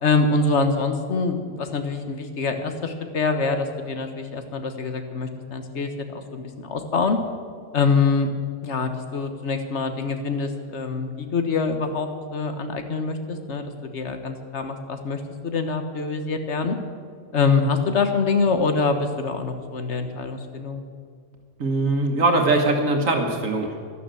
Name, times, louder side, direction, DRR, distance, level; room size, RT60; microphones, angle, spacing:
voice 1, 0.0-7.2 7.7-8.3 8.6-16.8 17.3-20.8, left 4 dB, 60° left, 7 dB, 1.5 m, -25 dB
voice 2, 21.6-23.8, right 2 dB, 80° right, 3 dB, 1.8 m, -21 dB
12.0 x 12.0 x 7.6 m, 2.1 s
omnidirectional pair, 1.3 m